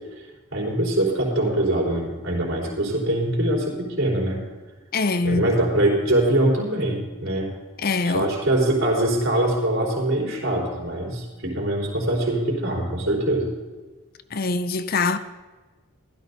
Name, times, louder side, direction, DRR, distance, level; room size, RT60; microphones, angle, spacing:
voice 1, 0.5-4.4 5.2-7.5 8.0-13.5, right 1 dB, 60° right, 4.3 m, -23 dB
voice 2, 4.9-5.5 7.8-8.3 14.3-15.2, left 3 dB, 45° left, 0.6 m, -23 dB
16.0 x 12.5 x 4.0 m
head